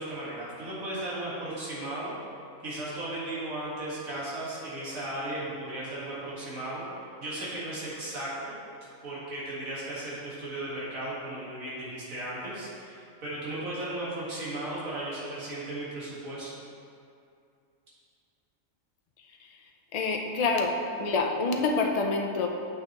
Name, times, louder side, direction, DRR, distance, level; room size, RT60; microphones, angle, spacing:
voice 1, 0.0-2.2 2.6-8.6 9.0-16.6, right 1 dB, 80° right, -8 dB, 2.0 m, -36 dB
voice 2, 19.9-20.7 21.0-22.5, left 3 dB, 50° left, 2 dB, 0.4 m, -26 dB
8.9 x 5.7 x 2.9 m, 2.5 s
omnidirectional pair, 1.4 m